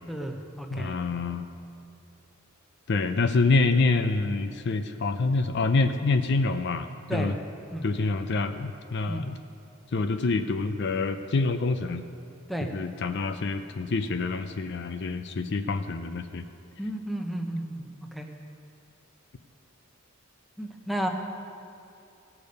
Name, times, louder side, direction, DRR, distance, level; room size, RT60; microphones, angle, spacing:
voice 1, 0.1-1.0 7.1-7.3 7.7-7.8 9.1-9.2 12.5-12.7 16.8-17.9 18.1-18.3 20.6-21.1, right 1 dB, ahead, 3 dB, 0.8 m, -32 dB
voice 2, 0.7-1.5 2.9-7.4 7.8-9.4 9.9-12.1 12.7-16.5, left 3 dB, 55° left, 8 dB, 0.5 m, -26 dB
17.5 x 6.8 x 5.3 m, 2.7 s
head